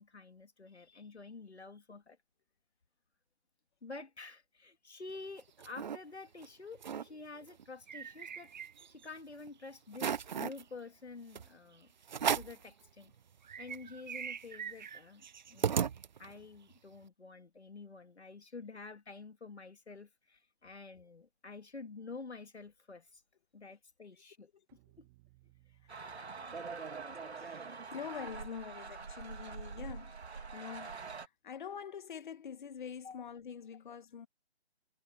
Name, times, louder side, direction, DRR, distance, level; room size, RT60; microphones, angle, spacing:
voice 1, 0.0-2.2 3.8-8.5 8.9-11.9 12.3-13.1 13.6-15.2 15.5-15.9 16.2-23.2 23.5-24.5 25.0-25.1 25.9-26.0 33.0-33.2, left 4 dB, 90° left, 2.3 m, -49 dB
sound 1, 5.1-6.0 6.4-6.5 6.7-7.1 7.5-9.1 9.5-9.6 9.9-10.6 11.3-11.5 12.1-12.7 13.1-13.2 13.4-16.5, right 7 dB, 45° right, 0.6 m, -37 dB
sound 2, 24.7-29.9, right 20 dB, 20° right, 2.5 m, -69 dB
voice 2, 25.8-26.1 27.3-30.2 30.5-34.3, left 7 dB, 50° left, 2.2 m, -46 dB
sound 3, 25.9-31.3, right 4 dB, 80° right, 2.5 m, -44 dB
figure-of-eight pair, 150°, 32 cm